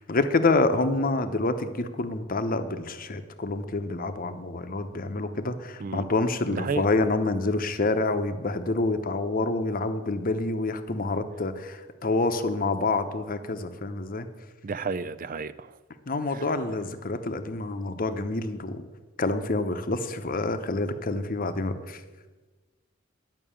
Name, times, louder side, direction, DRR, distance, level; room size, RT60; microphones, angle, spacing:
voice 1, 0.0-14.3 16.1-18.9 19.2-22.0, left 2 dB, 45° left, 9 dB, 0.8 m, -27 dB
voice 2, 6.5-6.8 14.6-15.7 16.3-16.4, right 4 dB, 45° right, 15 dB, 0.5 m, -32 dB
11.0 x 6.0 x 8.7 m, 1.3 s
head